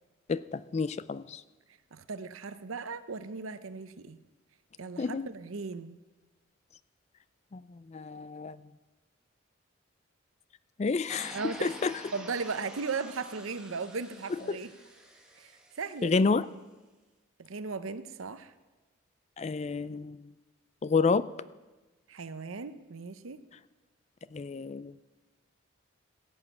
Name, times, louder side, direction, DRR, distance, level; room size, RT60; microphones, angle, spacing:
voice 1, 0.3-1.4 5.0-5.3 7.5-8.6 10.8-11.9 14.5-14.6 16.0-16.5 19.4-20.3 20.8-21.3 24.3-24.9, left 4 dB, 35° left, 17 dB, 0.3 m, -29 dB
voice 2, 1.9-4.2 4.8-6.0 11.3-11.7 12.1-14.7 15.4-15.5 15.8-16.1 17.4-18.5 22.1-23.4, right 4 dB, 85° right, 13 dB, 0.7 m, -37 dB
sound 1, 11.1-16.1, right 1 dB, 5° right, 1.4 m, -48 dB
16.5 x 7.2 x 7.2 m, 1.2 s
head